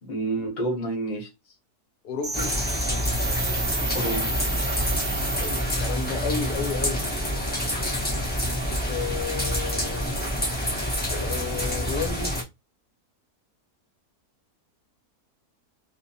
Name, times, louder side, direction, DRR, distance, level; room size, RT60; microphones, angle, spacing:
voice 1, 0.0-1.3 3.9-4.4, right 2 dB, 40° left, 0.8 m, -29 dB
voice 2, 2.0-2.5 5.4-7.1 8.8-10.4 11.1-12.3, left 6 dB, 85° left, 1.1 m, -32 dB
sound 1, 2.2-6.1, right 3 dB, 80° right, 0.4 m, -31 dB
sound 2, 2.3-12.4, equal, 15° left, 0.3 m, -27 dB
2.8 x 2.1 x 2.5 m
omnidirectional pair, 1.7 m